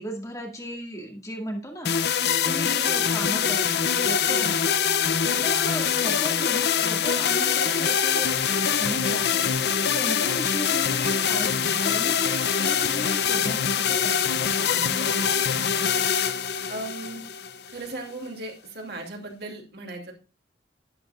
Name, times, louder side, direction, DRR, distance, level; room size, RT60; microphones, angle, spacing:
voice 1, 0.0-1.9 2.4-4.9 5.4-8.4 8.6-9.4 9.9-16.0, equal, 20° left, 1 dB, 2.1 m, -36 dB
sound 1, 1.9-17.9, left 7 dB, 65° left, 0.6 m, -24 dB
voice 2, 16.7-17.2 17.7-20.1, right 2 dB, 65° right, 1 dB, 2.6 m, -37 dB
11.5 x 10.0 x 2.4 m, 0.31 s
head